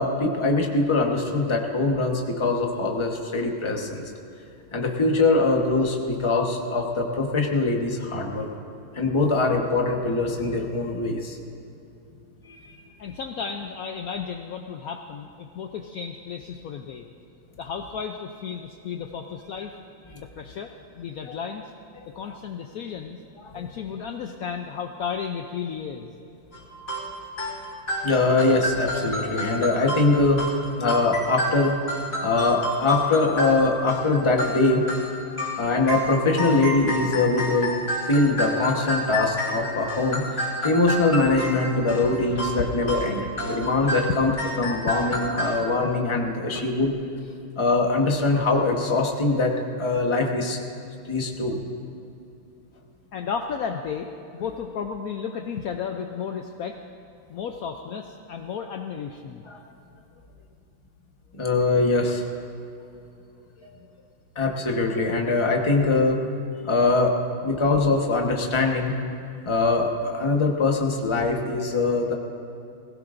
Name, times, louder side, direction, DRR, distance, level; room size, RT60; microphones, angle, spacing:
voice 1, 0.0-4.1 4.7-8.5 8.9-11.4 12.4-12.8 23.4-23.5 28.0-31.7 32.2-34.8 35.6-37.8 38.1-46.9 47.6-49.5 49.8-50.6 51.1-51.6 59.5-59.6 61.3-62.2 64.3-66.2 66.6-67.2 67.4-68.9 69.4-72.1, left 3 dB, 20° left, 1 dB, 0.8 m, -23 dB
voice 2, 13.0-17.1 17.6-19.7 20.1-21.7 22.1-23.2 23.5-26.1 42.0-42.4 43.7-44.1 44.7-44.8 45.8-45.9 46.5-46.6 53.1-56.8 57.3-59.4, left 7 dB, 80° left, 4 dB, 0.8 m, -33 dB
sound 1, 26.5-45.6, equal, 40° left, 3.9 m, -30 dB
20.0 x 16.5 x 2.6 m, 2.6 s
omnidirectional pair, 2.2 m